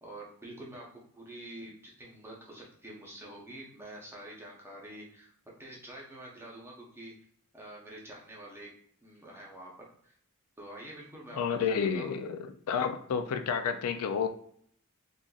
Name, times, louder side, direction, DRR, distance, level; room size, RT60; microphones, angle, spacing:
voice 1, 0.0-5.3 5.6-7.1 7.5-8.7 9.0-10.2 10.6-12.2, right 1 dB, 10° right, -3 dB, 0.8 m, -47 dB
voice 2, 11.3-14.3, left 6 dB, 80° left, 7 dB, 0.4 m, -30 dB
3.8 x 2.5 x 2.4 m, 0.63 s
head